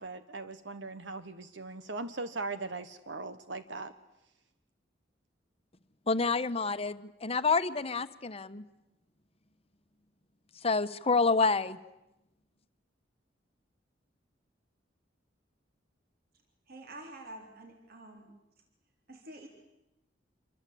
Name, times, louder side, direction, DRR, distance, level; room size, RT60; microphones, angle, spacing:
voice 1, 0.0-3.9, right 3 dB, 75° right, 11 dB, 1.3 m, -39 dB
voice 2, 6.1-8.6 10.6-11.8, left 4 dB, 35° left, 11 dB, 1.1 m, -28 dB
voice 3, 16.7-18.3 19.1-19.5, right 1 dB, 55° right, 3 dB, 3.8 m, -48 dB
27.5 x 24.5 x 8.6 m, 0.93 s
head